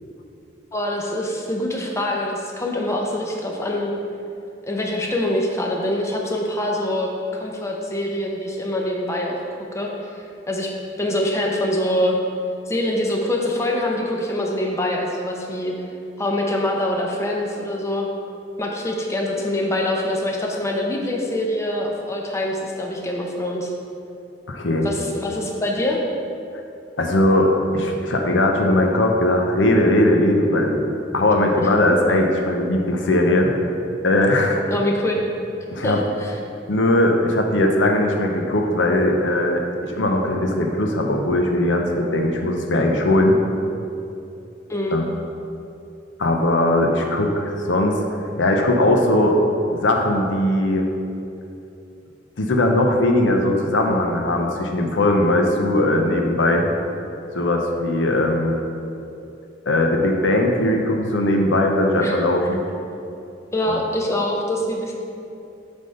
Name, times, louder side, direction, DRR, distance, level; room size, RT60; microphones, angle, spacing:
voice 1, 0.7-3.9 4.6-9.4 9.7-10.7 11.0-12.2 12.7-15.9 16.2-18.1 18.6-23.7 24.8-26.0 31.6-31.7 34.7-35.2 35.8-36.4 44.7-45.0 62.0-62.2 63.5-64.9, left 1 dB, 15° left, -1 dB, 0.6 m, -24 dB
voice 2, 24.5-24.9 27.0-30.9 31.1-33.5 34.0-34.6 35.7-36.0 36.7-39.6 39.9-43.4 44.9-45.1 46.2-48.0 48.4-49.4 49.7-50.9 52.4-56.7 57.3-58.6 59.7-62.6 63.7-63.8, left 1 dB, 80° left, 2 dB, 0.7 m, -19 dB
7.7 x 3.5 x 5.3 m, 2.7 s
head